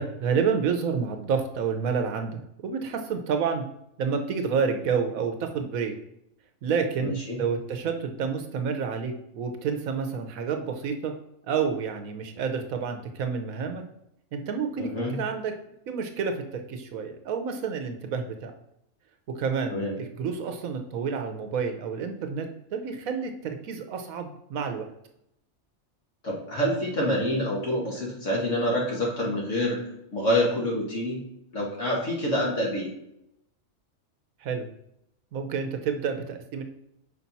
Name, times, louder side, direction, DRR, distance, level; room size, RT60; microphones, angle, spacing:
voice 1, 0.0-3.6 4.0-5.9 6.6-11.1 11.5-13.8 14.3-15.5 15.9-18.5 19.4-24.9 34.4-34.7 35.3-36.6, right 6 dB, 85° right, 6 dB, 1.3 m, -29 dB
voice 2, 7.0-7.4 14.8-15.1 19.7-19.9 26.2-29.8 30.1-31.2 31.5-32.9, equal, 65° left, -3 dB, 1.9 m, -27 dB
5.8 x 5.2 x 4.1 m, 0.79 s
omnidirectional pair, 1.4 m